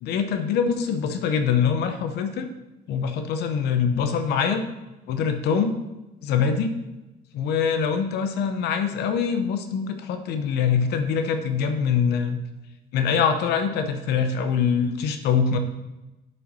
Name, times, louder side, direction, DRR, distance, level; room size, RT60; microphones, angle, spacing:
voice 1, 0.0-2.5 2.9-4.6 5.1-5.7 6.2-6.7 7.3-12.4 12.9-15.6, left 6 dB, 80° left, 7 dB, 0.8 m, -24 dB
7.6 x 5.8 x 5.4 m, 1.0 s
cardioid pair, 110°, 17 cm